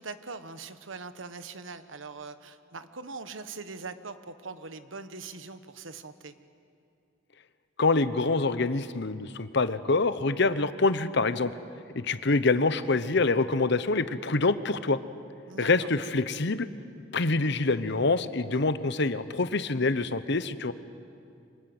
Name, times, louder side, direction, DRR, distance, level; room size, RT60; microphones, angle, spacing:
voice 1, 0.0-6.3 15.5-15.9, right 4 dB, 90° right, 11 dB, 1.3 m, -42 dB
voice 2, 7.8-11.5 11.9-15.0 15.6-16.7 17.1-20.7, left 3 dB, 65° left, 13 dB, 1.0 m, -26 dB
29.0 x 25.0 x 8.0 m, 2.6 s
head